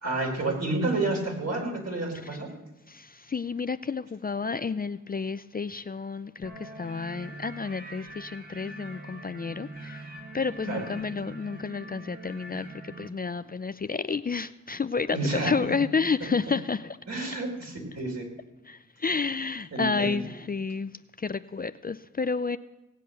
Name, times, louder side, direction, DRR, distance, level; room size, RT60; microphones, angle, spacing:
voice 1, 0.0-2.5 10.6-10.9 15.1-15.8 17.1-18.3 19.7-20.2, right 2 dB, 55° right, 1 dB, 4.7 m, -30 dB
voice 2, 2.9-17.0 18.7-20.9 21.2-22.6, left 5 dB, 30° left, 13 dB, 0.5 m, -30 dB
sound 1, 6.4-13.1, right 2 dB, 30° right, 2.1 m, -43 dB
17.5 x 8.4 x 6.6 m, 1.0 s
cardioid pair, 50°, 30 cm